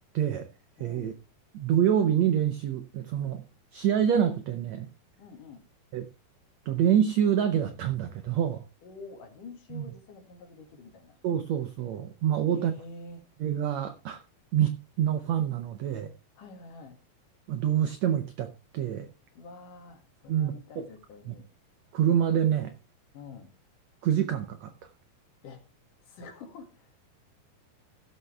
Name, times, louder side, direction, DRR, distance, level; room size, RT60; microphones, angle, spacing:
voice 1, 0.1-0.5 0.8-1.1 1.5-3.4 3.7-4.9 5.9-6.1 6.7-8.6 9.7-9.9 11.2-12.7 13.4-14.2 14.5-16.1 17.5-19.1 20.3-20.5 21.3-21.4 21.9-22.7 24.0-24.7, right 9 dB, 80° right, 1.5 m, -26 dB
voice 2, 0.8-1.2 5.2-5.7 8.8-11.2 12.5-13.3 16.4-17.0 19.3-21.5 23.1-23.6 25.4-25.7 26.0-27.0, left 3 dB, 65° left, 3.3 m, -47 dB
16.0 x 6.9 x 3.3 m
omnidirectional pair, 4.2 m